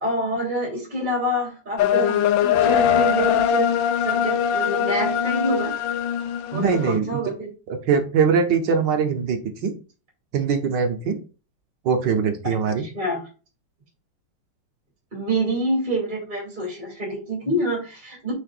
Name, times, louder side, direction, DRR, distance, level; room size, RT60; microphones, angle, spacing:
voice 1, 0.0-3.7 4.0-5.7 6.5-7.5 12.8-13.3 15.1-18.3, right 1 dB, 20° right, -2 dB, 2.7 m, -27 dB
sound 1, 1.8-6.9, left 8 dB, 75° left, 1.2 m, -21 dB
voice 2, 6.5-7.2 7.7-9.7 10.3-11.2 11.8-12.8, right 6 dB, 65° right, 5 dB, 1.4 m, -22 dB
6.3 x 6.0 x 2.5 m, 0.33 s
omnidirectional pair, 2.3 m